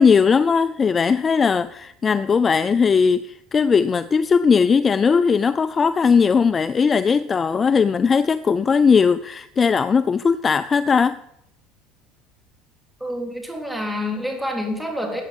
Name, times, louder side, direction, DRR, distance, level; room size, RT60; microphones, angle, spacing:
voice 1, 0.0-11.2, left 5 dB, 30° left, 0.4 m, -18 dB
voice 2, 13.0-15.2, left 1 dB, 5° right, 3.4 m, -27 dB
14.5 x 8.8 x 5.4 m
supercardioid pair, 105°, 0 cm